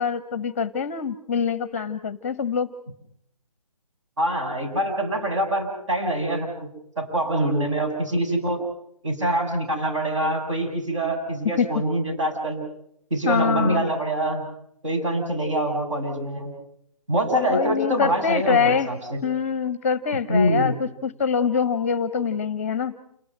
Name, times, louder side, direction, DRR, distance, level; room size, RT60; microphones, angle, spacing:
voice 1, 0.0-2.7 11.6-11.7 13.2-13.9 17.5-18.9 19.2-22.9, left 6 dB, 20° left, 16 dB, 0.9 m, -24 dB
voice 2, 4.2-6.7 7.0-8.6 9.0-12.6 13.1-14.5 14.8-16.5 17.1-19.2 20.3-20.8, right 1 dB, 55° right, 2 dB, 7.4 m, -24 dB
29.0 x 19.5 x 5.8 m, 0.70 s
figure-of-eight pair, 155°, 19 cm